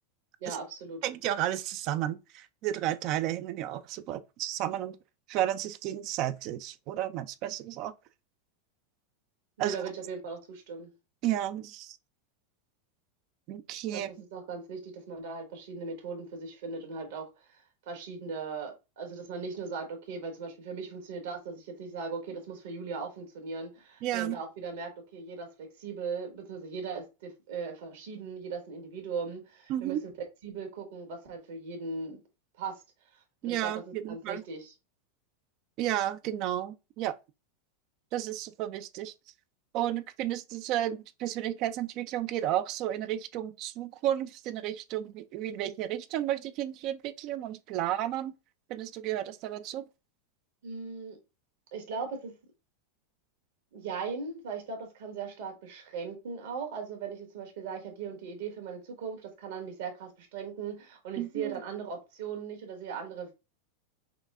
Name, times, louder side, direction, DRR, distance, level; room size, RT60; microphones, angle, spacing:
voice 1, 0.4-1.0 9.6-10.9 13.9-30.0 30.4-32.2 32.6-32.8 33.1-34.7 50.6-51.2 51.7-52.3 53.7-63.3, right 5 dB, 70° right, 1.9 m, -39 dB
voice 2, 1.0-5.0 5.3-7.9 9.6-9.8 11.2-12.0 13.5-14.1 24.0-24.4 29.7-30.0 33.4-34.4 35.8-37.2 38.1-39.1 39.7-48.3 48.7-49.8 61.2-61.5, right 12 dB, 50° right, 0.5 m, -32 dB
5.8 x 2.3 x 3.7 m
hypercardioid pair, 120°, 0 cm